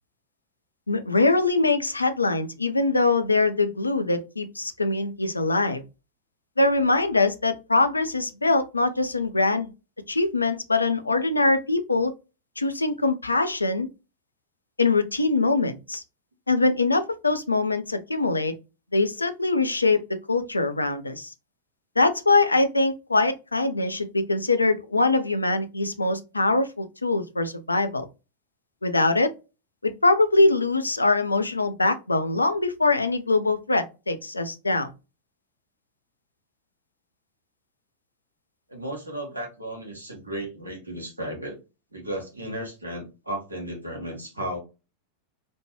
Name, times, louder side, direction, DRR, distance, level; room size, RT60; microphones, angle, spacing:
voice 1, 0.9-5.8 6.6-9.7 10.1-12.1 12.6-13.9 14.8-16.0 16.5-18.5 18.9-21.3 22.0-28.1 28.8-29.3 29.8-34.9, left 3 dB, 80° left, 0.4 m, -23 dB
voice 2, 38.7-41.6 41.9-44.6, right 1 dB, 85° right, 1.0 m, -34 dB
3.1 x 2.1 x 2.9 m
figure-of-eight pair, 90°, 0 cm